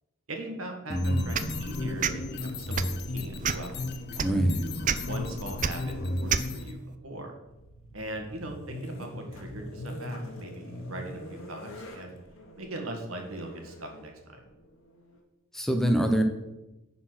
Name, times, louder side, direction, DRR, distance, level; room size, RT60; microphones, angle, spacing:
voice 1, 0.3-4.0 4.3-4.7 5.1-7.3 7.9-12.1 12.6-14.4, right 1 dB, 85° right, 3 dB, 1.7 m, -40 dB
sound 1, 0.9-6.7, left 1 dB, 50° left, 0.8 m, -33 dB
voice 2, 0.9-1.3 4.2-4.6 15.5-16.2, right 1 dB, ahead, 5 dB, 0.9 m, -25 dB
sound 2, 1.3-1.5 2.0-2.2 2.7-3.0 3.4-3.7 4.2-4.3 4.8-5.0 5.6-5.7 6.3-6.5, right 8 dB, 40° right, 0.4 m, -27 dB
sound 3, 7.5-15.2, left 1 dB, 80° left, 1.4 m, -43 dB
10.0 x 4.2 x 6.0 m, 0.98 s
head